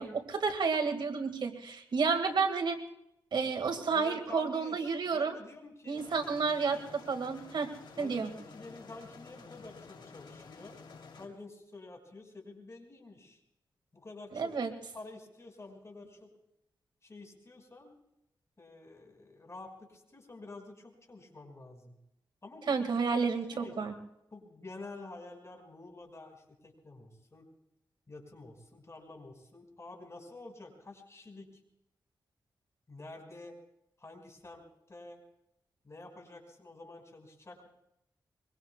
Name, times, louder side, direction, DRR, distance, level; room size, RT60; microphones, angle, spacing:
voice 1, 0.0-2.8 3.3-5.4 5.9-7.7 8.0-8.3 14.3-14.7 22.7-23.9, right 5 dB, 75° right, 5 dB, 2.1 m, -31 dB
voice 2, 3.9-6.1 8.0-10.8 11.1-13.4 13.9-14.5 14.9-16.3 17.0-18.0 18.6-22.0 22.4-22.9 23.5-23.8 24.3-27.5 28.1-31.6 32.9-33.6 34.0-35.2 35.8-37.7, left 2 dB, 35° left, 3 dB, 5.5 m, -49 dB
sound 1, 5.9-11.3, left 5 dB, 80° left, 3.3 m, -51 dB
24.0 x 23.0 x 2.4 m, 0.81 s
cardioid pair, 75°, 8 cm